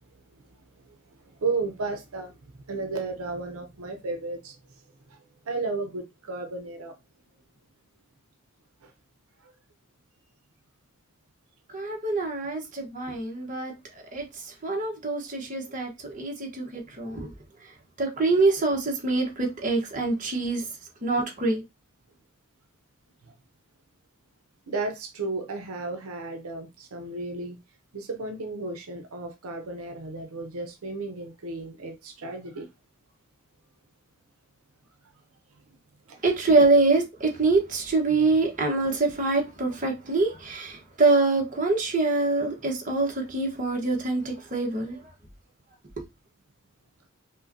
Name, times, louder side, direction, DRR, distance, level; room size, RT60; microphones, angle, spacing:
voice 1, 1.4-4.5 5.1-5.2 5.5-6.9 8.8-8.9 9.4-9.5 23.2-23.3 24.7-27.6 27.9-32.7 36.1-36.2, right 3 dB, 85° right, 0.7 m, -33 dB
voice 2, 11.7-13.7 14.1-17.3 17.6-17.7 18.0-20.7 21.0-21.6 36.2-45.0, right 3 dB, 35° right, 1.0 m, -25 dB
5.4 x 2.2 x 2.6 m
head